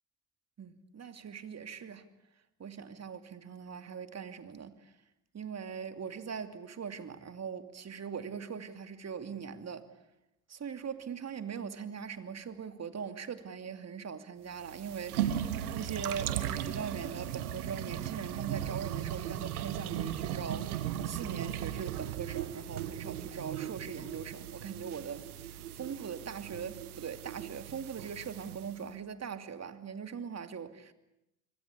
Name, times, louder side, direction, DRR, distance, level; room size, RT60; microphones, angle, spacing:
voice 1, 0.6-2.1 2.6-4.9 5.3-9.9 10.5-30.9, right 6 dB, 35° right, 2.7 m, -41 dB
sound 1, 14.5-28.8, right 11 dB, 85° right, 1.7 m, -37 dB
26.5 x 24.5 x 8.5 m
hypercardioid pair, 65°, 43 cm